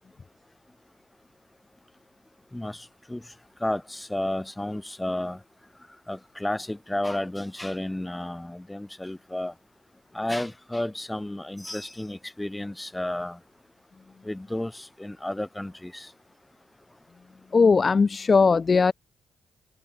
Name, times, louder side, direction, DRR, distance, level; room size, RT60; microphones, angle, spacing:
voice 1, 2.5-3.2 3.6-5.4 6.1-9.5 10.1-13.4 14.2-16.1, left 1 dB, 10° left, 4.3 m, -32 dB
voice 2, 17.5-18.9, left 4 dB, 35° left, 0.4 m, -19 dB
cardioid pair, 90°, 0 cm